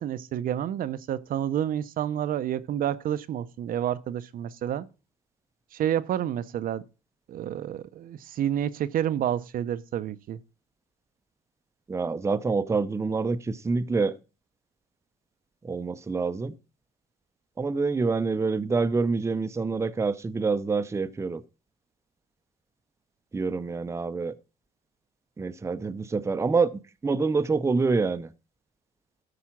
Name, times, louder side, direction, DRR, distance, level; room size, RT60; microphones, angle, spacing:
voice 1, 0.0-4.9 5.7-6.8 7.3-10.4, right 10 dB, 60° right, 0.6 m, -29 dB
voice 2, 11.9-14.1 15.6-16.5 17.6-21.4 23.3-24.3 25.4-26.7 27.0-28.3, right 4 dB, 15° right, 0.6 m, -26 dB
13.0 x 4.9 x 5.8 m
cardioid pair, 110°, 17 cm